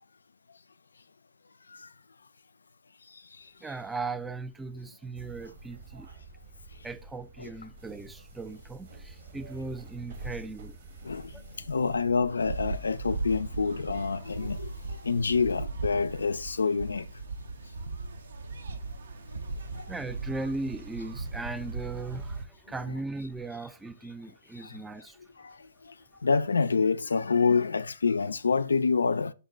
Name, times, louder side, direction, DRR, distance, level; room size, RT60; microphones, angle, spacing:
voice 1, 3.6-6.1 6.8-10.8 11.3-11.4 19.9-25.2, right 3 dB, 5° right, 0.3 m, -38 dB
sound 1, 5.1-15.7, right 2 dB, 55° right, 0.9 m, -48 dB
voice 2, 11.7-14.7 15.0-17.1 19.7-19.8 24.6-24.7 25.4-25.5 26.2-29.3, left 5 dB, 90° left, 0.3 m, -27 dB
sound 2, 12.4-22.5, right 3 dB, 75° right, 0.5 m, -38 dB
5.1 x 2.2 x 3.7 m
hypercardioid pair, 135°, 0 cm